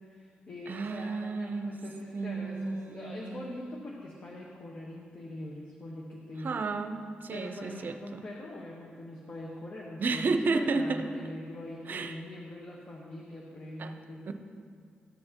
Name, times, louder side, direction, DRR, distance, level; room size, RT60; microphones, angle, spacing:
voice 1, 0.0-6.6 7.3-14.3, left 1 dB, 50° left, -3 dB, 1.2 m, -43 dB
voice 2, 0.7-1.7 2.1-3.4 6.4-8.2 10.0-11.3 11.9-12.2 13.8-13.9 14.3-14.4, right 3 dB, 60° right, 8 dB, 0.6 m, -32 dB
13.5 x 6.6 x 2.9 m, 2.2 s
cardioid pair, 55°, 4 cm